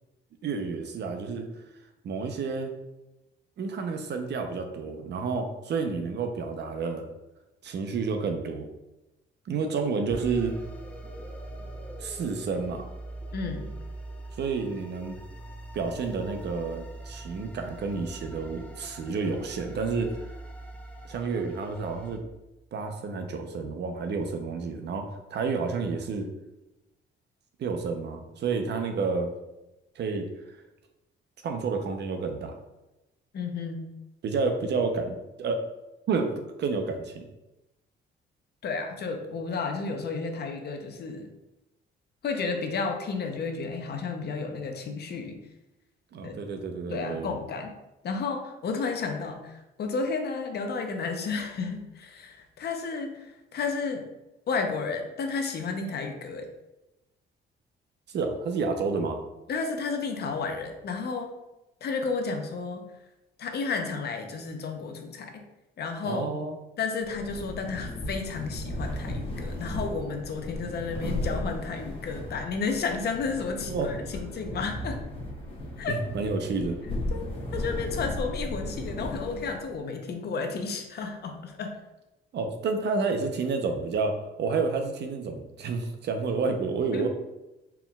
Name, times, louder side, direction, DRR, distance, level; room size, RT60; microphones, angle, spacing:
voice 1, 0.4-1.5 2.0-2.7 3.6-7.1 7.6-8.7 9.5-10.5 12.0-12.9 14.4-15.2 15.7-20.1 21.0-22.2 22.7-26.3 27.6-29.3 30.0-30.3 31.4-32.5 34.2-35.6 36.1-36.3 36.6-37.3 46.1-47.4 58.1-59.2 66.0-66.6 73.6-73.9 75.9-76.8 82.3-84.1 84.4-87.1, right 4 dB, 60° right, 5 dB, 0.6 m, -30 dB
sound 1, 10.1-22.2, right 2 dB, 5° left, 0.6 m, -42 dB
voice 2, 13.3-13.7 33.3-33.9 38.6-41.3 42.2-45.4 46.2-46.4 46.9-47.8 48.0-54.0 54.5-56.5 59.5-61.3 61.8-62.9 63.4-65.4 65.8-66.3 66.8-75.0 75.8-76.0 77.1-81.7 86.9-87.1, left 4 dB, 55° left, 5 dB, 0.7 m, -32 dB
sound 2, 67.0-79.7, left 1 dB, 25° left, 1.0 m, -35 dB
4.5 x 3.7 x 2.3 m, 0.96 s
cardioid pair, 90°, 20 cm